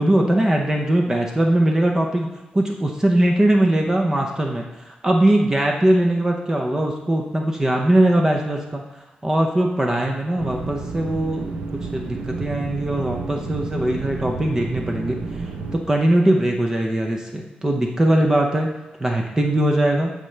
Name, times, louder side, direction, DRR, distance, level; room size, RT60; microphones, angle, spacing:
voice 1, 0.0-2.3 2.5-8.8 9.2-18.7 19.0-20.1, right 1 dB, 20° right, 1 dB, 0.6 m, -20 dB
sound 1, 10.4-15.8, right 4 dB, 70° right, 0.9 m, -31 dB
13.5 x 5.1 x 3.3 m, 1.0 s
wide cardioid pair, 150°, 3 cm